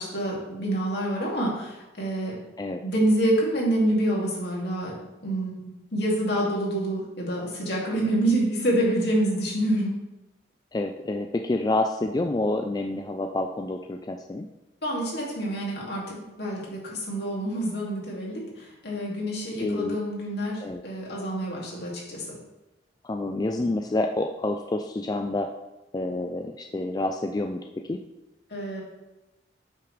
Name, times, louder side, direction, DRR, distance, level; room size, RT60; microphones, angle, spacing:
voice 1, 0.0-2.4 2.8-4.9 5.2-10.0 14.8-22.4 28.5-28.8, right 1 dB, 65° left, -4 dB, 2.4 m, -27 dB
voice 2, 10.7-14.5 19.6-20.0 20.6-20.8 23.0-25.5 25.9-27.6 27.9-28.0, left 2 dB, 20° left, 4 dB, 0.3 m, -28 dB
8.8 x 5.8 x 3.3 m, 1.0 s
head